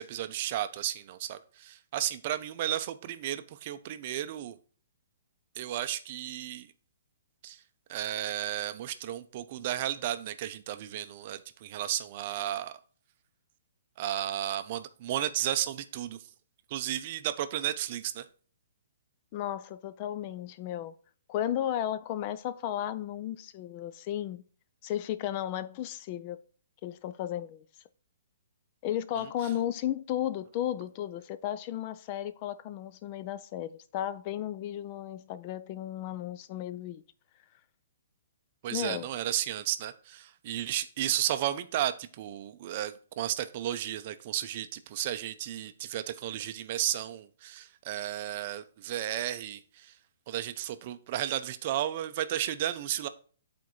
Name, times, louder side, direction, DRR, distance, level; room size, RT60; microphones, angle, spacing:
voice 1, 0.0-4.6 5.6-6.7 7.4-7.6 7.9-12.8 14.0-16.2 16.7-18.3 29.2-29.3 38.6-49.9 50.3-53.1, right 12 dB, 40° right, 0.5 m, -33 dB
voice 2, 19.3-21.0 21.3-24.4 24.8-26.4 26.8-27.6 28.8-37.0 38.7-39.1, left 11 dB, 35° left, 0.3 m, -34 dB
9.3 x 4.3 x 3.1 m
hypercardioid pair, 155°, 0 cm